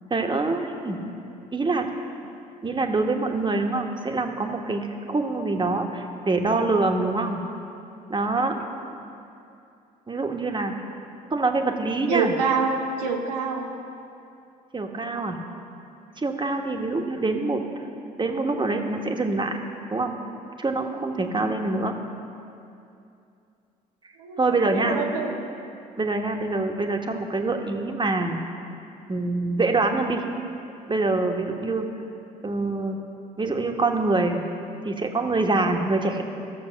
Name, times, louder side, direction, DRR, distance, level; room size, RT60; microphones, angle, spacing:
voice 1, 0.1-1.0 1.5-1.9 2.6-7.4 8.1-8.5 10.1-10.7 11.3-12.3 14.7-15.4 16.2-17.6 18.2-19.6 19.9-20.1 20.6-21.9 24.4-25.0 26.0-28.4 29.1-30.2 30.9-31.9 32.4-33.0 33.4-34.4 34.8-36.2, right 3 dB, 25° right, 3 dB, 1.4 m, -25 dB
voice 2, 12.1-13.7 24.2-25.4, right 5 dB, 90° right, 2 dB, 1.1 m, -26 dB
14.5 x 6.8 x 6.5 m, 2.6 s
hypercardioid pair, 55°, 20 cm